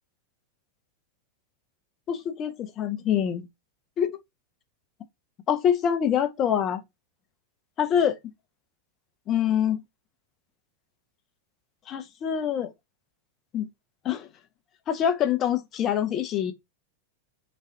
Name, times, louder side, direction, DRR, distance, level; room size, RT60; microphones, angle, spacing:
voice 1, 2.1-3.4 4.0-4.1 5.5-6.8 7.8-8.2 9.3-9.8 11.9-12.7 13.5-13.7 14.0-14.3 14.9-16.5, left 9 dB, 30° left, 0.5 m, -25 dB
3.1 x 2.3 x 2.7 m
figure-of-eight pair, 90°, 0 cm